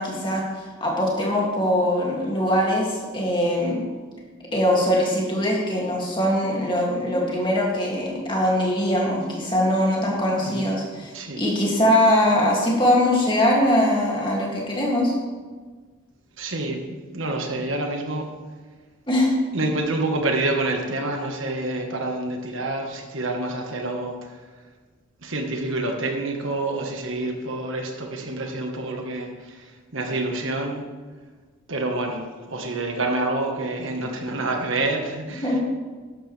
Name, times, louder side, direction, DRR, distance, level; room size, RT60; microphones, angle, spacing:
voice 1, 0.0-3.8 4.5-15.1 19.1-19.3 35.4-35.6, left 1 dB, 25° left, -3 dB, 2.5 m, -22 dB
voice 2, 16.4-18.3 19.5-24.2 25.2-30.8 31.7-35.6, right 2 dB, 70° right, 3 dB, 1.5 m, -27 dB
13.0 x 11.0 x 3.4 m, 1.4 s
head